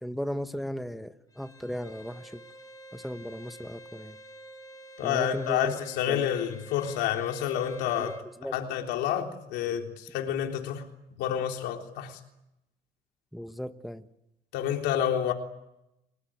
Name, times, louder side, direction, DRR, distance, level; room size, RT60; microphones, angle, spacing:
voice 1, 0.0-2.4 2.9-4.2 5.0-5.8 6.1-6.3 8.0-8.1 8.4-8.6 13.3-14.0, equal, ahead, 9 dB, 1.2 m, -36 dB
Bowed string instrument, 1.3-8.3, right 1 dB, 20° left, 4.5 m, -49 dB
voice 2, 5.0-8.1 8.5-10.9 11.2-12.2 14.5-15.3, left 10 dB, 90° left, 3 dB, 3.6 m, -29 dB
29.0 x 20.0 x 9.0 m, 0.89 s
cardioid pair, 110°, 17 cm